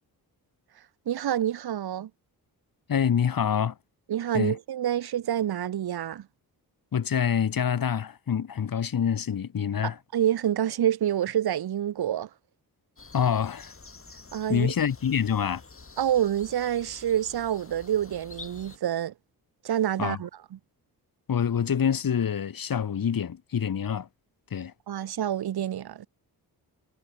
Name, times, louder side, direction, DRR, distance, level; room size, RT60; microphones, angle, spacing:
voice 1, 1.1-2.1 4.1-6.2 10.1-12.3 14.3-14.7 16.0-19.1 19.6-20.3 24.9-26.1, right 10 dB, 80° right, 2.0 m, -27 dB
voice 2, 2.9-3.8 4.3-4.6 6.9-10.0 13.1-13.7 14.5-15.6 20.0-20.2 21.3-24.1 24.5-24.7, left 8 dB, 65° left, 3.0 m, -26 dB
sound 1, 13.0-18.8, left 4 dB, 35° left, 5.6 m, -48 dB
cardioid pair, 70°, 38 cm